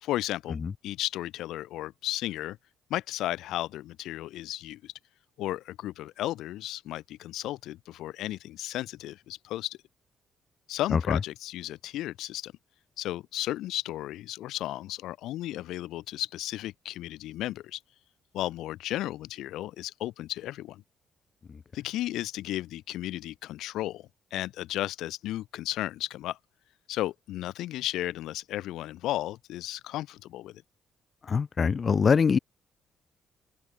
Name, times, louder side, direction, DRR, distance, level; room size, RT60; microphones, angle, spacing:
voice 1, 0.0-2.6 2.9-4.9 5.4-9.8 10.7-12.5 13.0-17.8 18.3-20.8 21.7-26.4 26.9-30.6, left 14 dB, 85° left, 1.6 m, -34 dB
voice 2, 31.3-32.4, left 6 dB, 40° left, 2.1 m, -23 dB
open air
cardioid pair, 90°, 0 cm